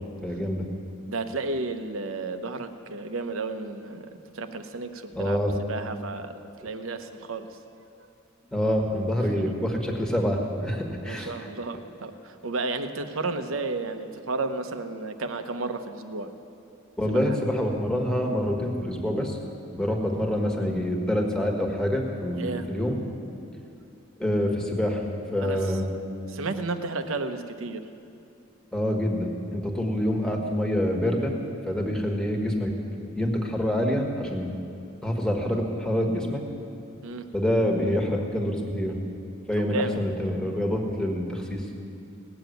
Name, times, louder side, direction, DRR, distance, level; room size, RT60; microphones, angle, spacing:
voice 1, 0.2-0.7 5.1-5.5 8.5-11.3 17.0-19.4 19.7-23.0 24.2-25.9 28.7-31.3 31.7-32.7 33.1-34.5 35.0-36.4 37.3-39.0 39.5-41.6, equal, 5° left, 1 dB, 1.5 m, -26 dB
voice 2, 1.1-4.1 4.3-5.4 5.7-6.3 6.6-7.5 8.0-8.1 9.4-9.6 11.1-16.3 17.1-17.2 22.4-22.7 25.4-25.7 26.3-27.8 37.0-37.3 39.6-40.0, right 3 dB, 75° right, 8 dB, 0.9 m, -32 dB
18.5 x 7.2 x 9.3 m, 2.7 s
head